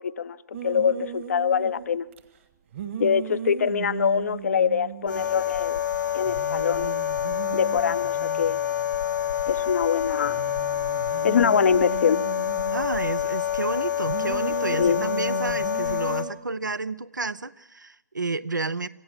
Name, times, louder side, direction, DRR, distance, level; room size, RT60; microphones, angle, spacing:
voice 1, 0.0-2.1 3.0-5.8 6.1-7.0 7.5-8.6 9.5-10.4 11.2-12.2 14.8-15.0, left 7 dB, 55° left, 16 dB, 0.7 m, -24 dB
sound 1, 0.5-2.2 2.7-5.6 5.9-6.0 6.2-9.7 10.2-13.0 14.0-16.3, right 8 dB, 40° right, 1.5 m, -37 dB
sound 2, 5.1-16.2, left 11 dB, 70° left, 1.6 m, -27 dB
voice 2, 12.7-18.9, right 3 dB, 80° right, 16 dB, 0.7 m, -30 dB
25.5 x 15.0 x 7.4 m, 1.0 s
figure-of-eight pair, 130°, 10 cm